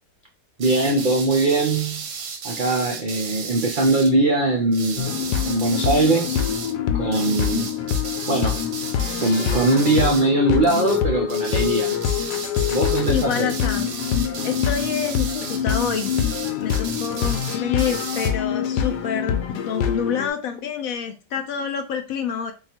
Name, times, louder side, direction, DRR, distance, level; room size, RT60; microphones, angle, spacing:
sound 1, 0.6-4.1 4.7-6.7 7.1-10.3 10.6-11.0 11.3-18.3, right 5 dB, 60° right, 0.8 m, -34 dB
voice 1, 0.6-2.0 2.4-5.1 5.4-6.5 6.9-7.7 8.3-8.7 9.2-12.0 12.7-13.5, right 2 dB, 80° right, 0.4 m, -21 dB
sound 2, 5.0-20.3, left 9 dB, 90° left, 1.2 m, -25 dB
voice 2, 13.1-13.9 14.4-16.1 16.6-22.5, left 7 dB, 70° left, 0.9 m, -27 dB
3.6 x 2.3 x 4.3 m
omnidirectional pair, 1.7 m